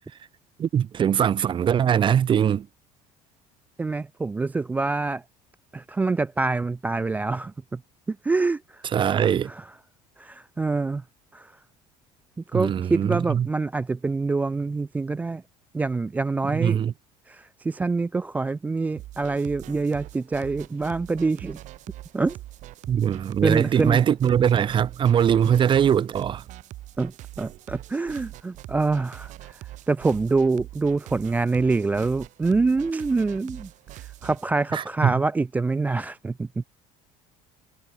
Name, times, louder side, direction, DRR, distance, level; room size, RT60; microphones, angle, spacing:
voice 1, 0.6-2.7 8.9-9.5 12.5-13.5 16.4-16.9 22.9-26.4 34.7-35.2, right 9 dB, 35° right, 2.0 m, -21 dB
voice 2, 3.8-5.2 5.7-7.8 8.1-9.2 9.5-9.6 10.2-11.0 11.3-11.5 12.5-15.4 15.7-16.8 17.3-21.6 22.1-22.4 23.4-24.0 27.0-27.1 27.4-29.6 29.9-33.7 34.2-36.6, right 3 dB, 10° right, 0.3 m, -25 dB
sound 1, 19.0-34.4, right 15 dB, 55° right, 2.2 m, -42 dB
cardioid pair, 145°, 15 cm